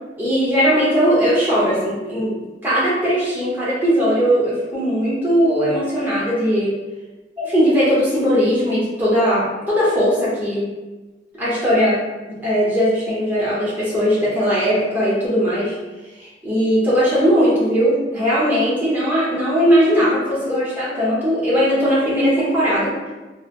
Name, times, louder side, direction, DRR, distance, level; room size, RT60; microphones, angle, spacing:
voice 1, 0.2-2.4 2.6-6.7 7.4-10.7 11.4-15.7 16.4-22.9, equal, 10° right, -9 dB, 0.9 m, -19 dB
2.9 x 2.1 x 2.4 m, 1.2 s
head